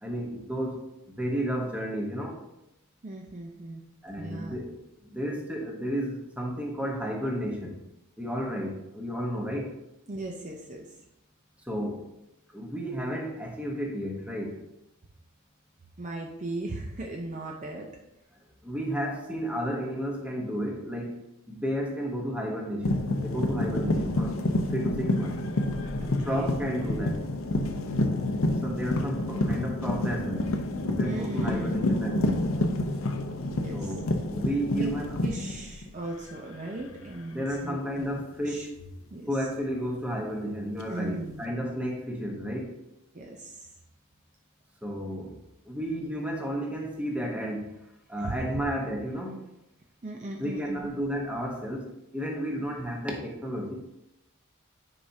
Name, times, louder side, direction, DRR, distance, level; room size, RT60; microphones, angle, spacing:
voice 1, 0.0-2.4 4.0-7.8 8.2-9.8 11.6-12.1 12.5-14.6 18.6-24.4 24.7-25.5 26.2-27.3 28.6-32.6 33.7-35.2 37.3-38.7 39.3-42.8 44.8-45.4 45.6-47.8 48.1-49.5 50.4-53.9, equal, 5° right, 0 dB, 1.0 m, -32 dB
voice 2, 3.0-3.8 4.2-4.6 10.1-10.9 16.0-17.9 26.0-26.6 31.0-31.9 33.5-33.9 34.8-34.9 35.2-38.1 38.4-38.6 39.1-39.3 40.9-41.5 43.1-43.6 48.2-48.4 50.0-50.9, right 2 dB, 35° right, 0 dB, 0.6 m, -37 dB
sound 1, 22.8-36.3 36.6-37.0 38.8-39.0 40.8-41.4, left 1 dB, 70° left, 0.7 m, -28 dB
9.8 x 4.9 x 2.7 m, 0.87 s
head